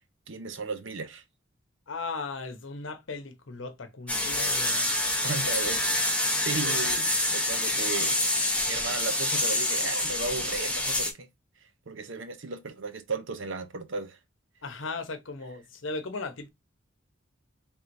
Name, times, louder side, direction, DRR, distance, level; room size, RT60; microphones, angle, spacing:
voice 1, 0.3-1.2 5.2-8.2 8.7-11.3 11.9-14.2, right 4 dB, 75° right, 0.8 m, -35 dB
voice 2, 1.9-4.9 6.6-6.8 14.6-16.5, left 3 dB, 75° left, 0.8 m, -37 dB
sound 1, 4.1-11.1, left 1 dB, 5° left, 0.7 m, -27 dB
4.6 x 3.6 x 2.6 m
head